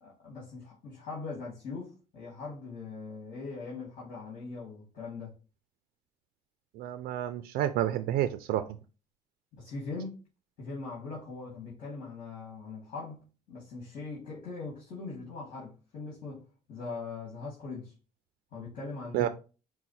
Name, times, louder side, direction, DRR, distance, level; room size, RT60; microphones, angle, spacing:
voice 1, 0.0-5.3 9.5-10.3 10.6-13.2 13.5-16.4 16.7-17.9 18.5-19.3, left 4 dB, 60° left, 1.9 m, -41 dB
voice 2, 6.8-8.6 19.1-19.3, right 12 dB, 80° right, 0.4 m, -29 dB
4.8 x 2.1 x 4.1 m
cardioid pair, 95°, 16 cm